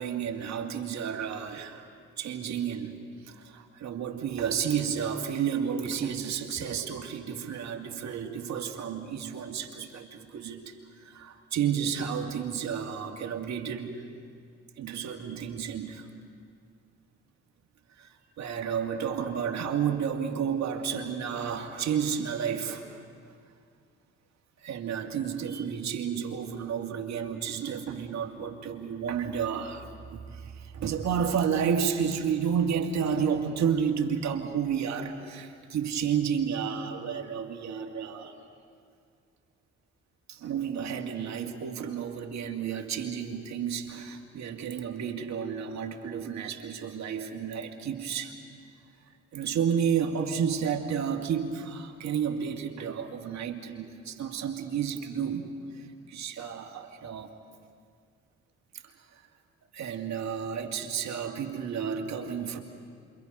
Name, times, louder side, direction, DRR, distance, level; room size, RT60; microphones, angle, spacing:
voice 1, 0.0-1.9 2.2-3.0 3.2-14.0 14.8-16.1 18.0-23.0 24.6-38.3 40.3-48.4 49.3-55.5 55.8-57.3 58.8-58.9 59.7-62.6, right 7 dB, 65° right, 3 dB, 2.2 m, -31 dB
27.5 x 24.5 x 5.5 m, 2.2 s
hypercardioid pair, 45°, 30 cm